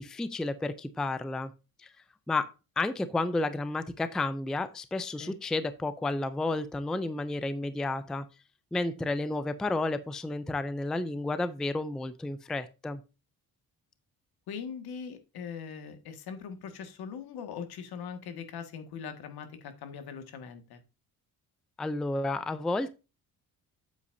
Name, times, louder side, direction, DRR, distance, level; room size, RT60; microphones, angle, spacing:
voice 1, 0.0-1.5 1.8-1.9 2.3-2.5 2.8-8.2 8.7-13.0 21.8-22.9, left 2 dB, ahead, 13 dB, 0.3 m, -31 dB
voice 2, 14.5-20.8, left 6 dB, 80° left, 8 dB, 1.8 m, -41 dB
8.3 x 8.1 x 2.6 m, 0.29 s
cardioid pair, 170°, 37 cm